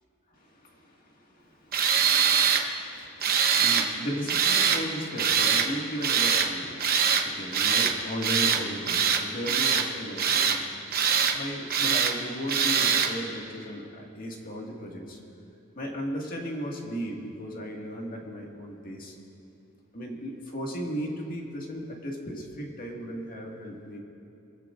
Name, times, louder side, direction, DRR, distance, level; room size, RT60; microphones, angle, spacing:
voice 1, 0.3-10.9 11.3-15.2 15.8-19.2 19.9-24.0, equal, 40° left, -1 dB, 1.9 m, -36 dB
Tools, 1.7-2.6 3.2-3.9 4.3-4.8 5.2-5.7 6.0-6.5 6.8-7.3 7.5-7.9 8.2-8.6 8.9-9.9 10.2-10.6 10.9-11.4 11.7-12.1 12.5-13.1, right 7 dB, 45° right, 0.9 m, -23 dB
24.5 x 15.0 x 2.5 m, 2.7 s
head